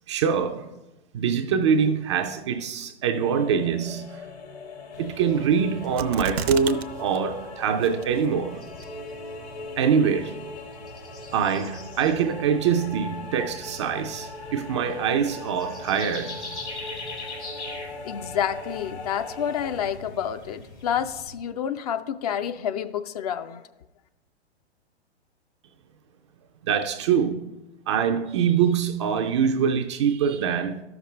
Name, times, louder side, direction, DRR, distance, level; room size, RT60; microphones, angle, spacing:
voice 1, 0.1-0.7 1.1-4.2 5.0-8.6 9.8-10.4 11.3-17.0 26.7-27.5 27.9-30.8, right 7 dB, 30° right, 0.4 m, -24 dB
sound 1, 3.1-19.8, left 2 dB, 70° left, 1.8 m, -40 dB
sound 2, 4.9-21.3, left 2 dB, 90° left, 3.0 m, -43 dB
sound 3, 6.0-6.8 7.1-7.2 7.8-8.3 8.8-8.9, right 7 dB, 65° right, 0.6 m, -31 dB
voice 2, 18.0-23.6, left 9 dB, 35° left, 0.4 m, -29 dB
13.0 x 5.9 x 3.1 m
figure-of-eight pair, 110°, 33 cm